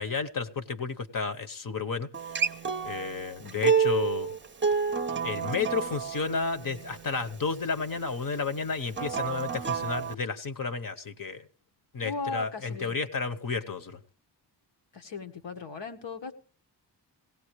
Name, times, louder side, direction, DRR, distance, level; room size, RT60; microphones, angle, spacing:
voice 1, 0.0-2.3 2.8-4.3 5.2-11.4 11.9-14.0, left 5 dB, 50° left, 1.1 m, -32 dB
Acoustic guitar, 2.1-7.3 8.9-10.1, right 6 dB, 25° right, 0.6 m, -29 dB
voice 2, 12.0-12.9 14.9-16.3, left 4 dB, 85° left, 1.6 m, -37 dB
20.0 x 17.0 x 3.2 m
wide cardioid pair, 85°, 42 cm